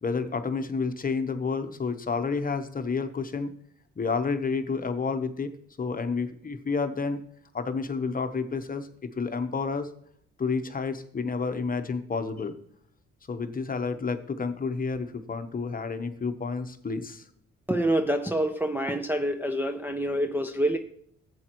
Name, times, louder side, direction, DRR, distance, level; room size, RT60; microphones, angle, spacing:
voice 1, 0.0-3.5 4.0-5.5 5.8-7.2 7.5-9.9 10.4-12.5 13.3-17.2, left 4 dB, 30° left, 8 dB, 1.0 m, -30 dB
voice 2, 17.7-20.8, right 1 dB, 5° right, 3 dB, 0.6 m, -26 dB
13.5 x 8.0 x 3.0 m, 0.65 s
cardioid pair, 90°, 30 cm